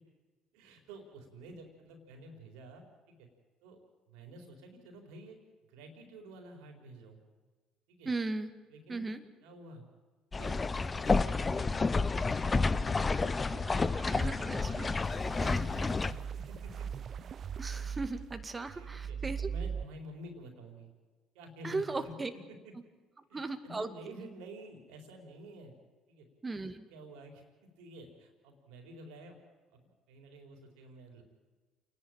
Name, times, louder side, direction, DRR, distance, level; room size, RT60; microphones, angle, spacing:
voice 1, 0.5-3.3 3.6-3.8 4.1-5.4 5.6-7.2 7.9-8.1 8.7-9.1 9.4-9.9 10.3-11.8 12.2-13.3 14.1-14.4 15.2-16.9 18.7-19.2 19.5-20.9 21.3-22.1 22.6-22.7 23.3-25.7 26.1-26.3 26.6-27.4 27.8-29.4 29.7-31.2, right 1 dB, 75° right, 4 dB, 4.2 m, -50 dB
voice 2, 8.1-8.5 8.9-9.2 14.1-14.9 15.4-15.6 17.6-19.5 21.6-22.3 23.3-23.9 26.4-26.8, right 3 dB, 25° right, 10 dB, 2.1 m, -37 dB
sound 1, 10.3-16.1, left 4 dB, 30° left, 0.8 m, -30 dB
sound 2, 12.9-19.8, right 7 dB, 50° right, 0.7 m, -41 dB
28.5 x 11.0 x 9.0 m, 1.4 s
hypercardioid pair, 65°, 0 cm